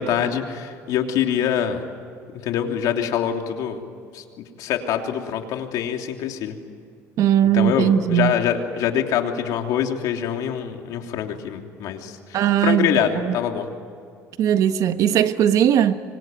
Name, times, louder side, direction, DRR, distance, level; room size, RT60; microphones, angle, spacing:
voice 1, 0.0-1.9 2.4-3.8 4.1-4.2 4.6-6.5 7.5-13.7, left 9 dB, 75° left, 3.1 m, -24 dB
voice 2, 7.2-8.3 12.3-13.4 14.4-16.0, right 10 dB, 60° right, 1.3 m, -19 dB
26.0 x 24.5 x 9.2 m
cardioid pair, 110°, 6 cm